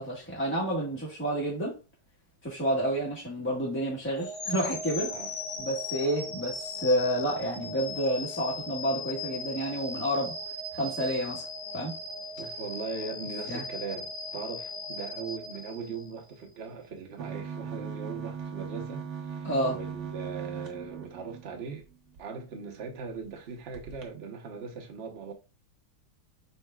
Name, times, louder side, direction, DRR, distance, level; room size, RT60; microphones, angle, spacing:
voice 1, 0.0-1.8 2.4-5.1 5.6-10.4 10.7-11.5 11.7-12.0 13.5-13.6 19.4-19.8, equal, 10° left, 1.0 m, -29 dB
sound 1, 4.2-16.3, left 2 dB, 75° left, 1.8 m, -38 dB
voice 2, 12.4-21.9 22.2-25.3, right 5 dB, 80° right, 0.5 m, -39 dB
sound 2, 17.2-22.2 22.7-22.8 23.1-23.3 23.7-24.1, right 6 dB, 55° right, 0.8 m, -39 dB
5.5 x 3.9 x 2.2 m
omnidirectional pair, 2.2 m